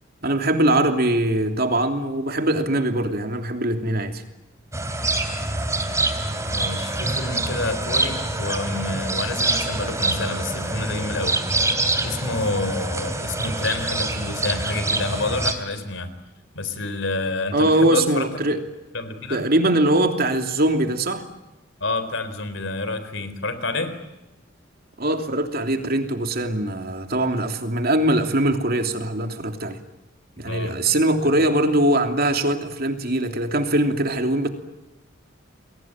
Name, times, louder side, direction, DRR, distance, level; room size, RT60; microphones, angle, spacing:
voice 1, 0.2-4.2 17.5-18.6 19.3-21.2 25.0-29.8 30.4-34.5, right 1 dB, 50° right, 6 dB, 3.1 m, -22 dB
sound 1, 4.7-15.5, right 2 dB, 15° right, 3.1 m, -25 dB
voice 2, 6.5-11.4 12.0-16.1 16.5-18.3 18.9-19.5 21.8-24.0 30.4-30.8, left 2 dB, 65° left, 11 dB, 4.0 m, -28 dB
29.5 x 22.5 x 9.0 m, 0.98 s
head